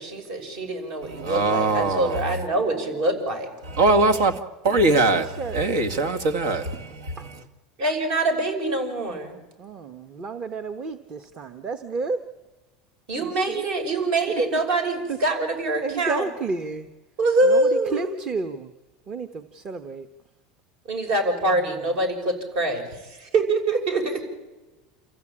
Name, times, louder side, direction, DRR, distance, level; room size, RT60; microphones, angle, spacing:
voice 1, 0.0-3.5 7.8-9.4 13.1-16.3 17.2-18.1 20.9-24.2, right 2 dB, 60° right, 6.0 m, -24 dB
voice 2, 1.0-2.3 3.6-7.4, right 2 dB, 90° right, 2.1 m, -22 dB
voice 3, 5.1-5.6 7.2-7.3 9.6-12.2 13.2-13.6 14.5-14.6 15.1-15.2 15.8-16.9 17.5-18.7 19.1-20.1, right 4 dB, 35° right, 1.0 m, -31 dB
28.5 x 15.0 x 8.7 m
supercardioid pair, 135°, 3 cm